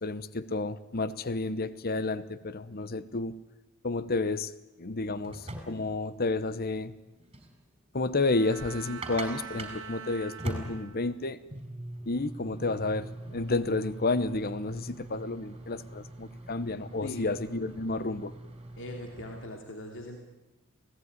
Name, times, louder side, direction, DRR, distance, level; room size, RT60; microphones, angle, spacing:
voice 1, 0.0-3.3 3.8-4.5 4.8-6.9 7.9-11.4 12.1-18.3, left 3 dB, 45° left, 15 dB, 1.0 m, -31 dB
sound 1, 5.0-19.5, right 1 dB, 25° right, 4.6 m, -43 dB
Bowed string instrument, 8.2-11.4, right 6 dB, 60° right, 1.3 m, -44 dB
voice 2, 17.0-17.3 18.8-20.2, left 1 dB, 60° left, 2 dB, 2.9 m, -41 dB
26.0 x 17.5 x 9.7 m, 0.98 s
head